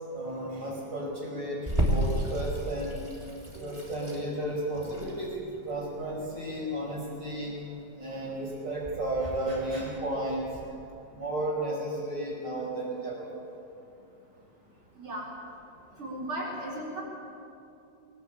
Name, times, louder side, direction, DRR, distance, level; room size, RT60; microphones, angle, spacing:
voice 1, 0.1-1.6 1.9-3.0 3.6-5.3 5.6-7.6 8.0-10.5 11.1-13.3, right 1 dB, 80° right, -3 dB, 6.3 m, -33 dB
Water tap faucet / Sink (filling or washing), 1.7-10.6, right 1 dB, 15° right, 3.0 m, -34 dB
voice 2, 14.9-15.3 16.0-17.0, right 1 dB, 40° right, -4 dB, 4.8 m, -36 dB
22.0 x 18.0 x 8.7 m, 2.6 s
omnidirectional pair, 1.9 m